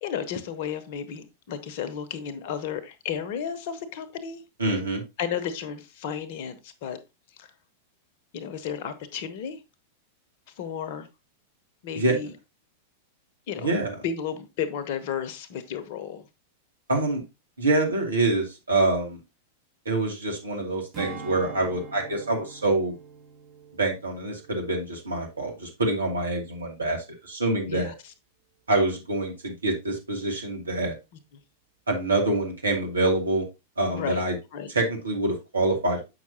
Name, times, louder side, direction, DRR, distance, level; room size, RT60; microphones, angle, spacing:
voice 1, 0.0-4.4 5.2-7.0 7.4-7.5 8.3-9.6 10.6-11.1 11.8-12.3 13.5-13.7 14.0-16.3 27.7-28.1 33.9-34.2 34.5-34.7, left 8 dB, 50° left, 11 dB, 1.0 m, -33 dB
voice 2, 4.6-5.0 11.9-12.1 13.6-13.9 16.9-17.2 17.6-19.2 19.9-22.9 23.8-27.0 27.2-27.9 28.7-30.9 31.9-33.5 33.8-34.3 34.7-36.1, right 2 dB, 80° right, 0 dB, 2.5 m, -26 dB
Strum, 20.9-25.6 26.0-26.2, right 5 dB, 30° right, 2.4 m, -44 dB
8.0 x 5.9 x 2.9 m, 0.24 s
figure-of-eight pair, 95°, 0 cm